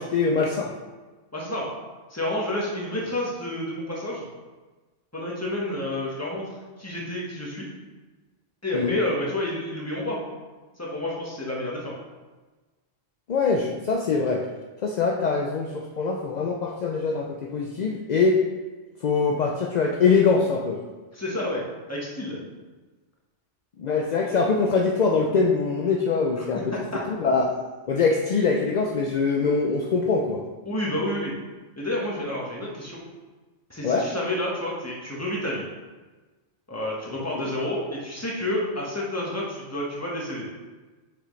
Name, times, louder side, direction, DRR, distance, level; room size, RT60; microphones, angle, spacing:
voice 1, 0.1-0.7 8.7-9.0 13.3-14.4 14.8-18.4 19.0-20.8 23.8-26.7 27.1-27.5 27.9-30.4 33.8-34.1 37.3-37.5, left 4 dB, 55° left, 1 dB, 0.5 m, -23 dB
voice 2, 1.3-1.7 2.1-4.3 5.1-6.5 6.8-7.7 8.6-10.2 10.8-11.9 21.1-21.6 21.9-22.4 26.3-26.5 26.7-27.0 30.6-31.3 31.8-33.0 33.7-35.6 36.7-40.5, left 1 dB, 15° left, -4 dB, 1.3 m, -29 dB
6.2 x 6.0 x 3.2 m, 1.3 s
omnidirectional pair, 1.2 m